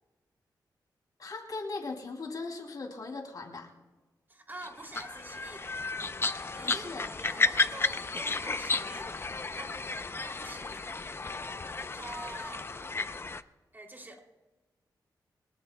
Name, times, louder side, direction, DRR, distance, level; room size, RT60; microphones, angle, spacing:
voice 1, 1.2-3.7 6.6-7.5, left 3 dB, 55° left, 2 dB, 2.9 m, -39 dB
voice 2, 4.3-5.8 6.5-9.2 9.5-9.8 10.2-10.9 11.7-12.7 13.7-14.2, right 1 dB, 25° right, 2 dB, 2.9 m, -46 dB
sound 1, 4.6-13.4, left 3 dB, 30° left, 0.6 m, -33 dB
25.5 x 18.0 x 2.3 m, 1.2 s
cardioid pair, 85°, 8 cm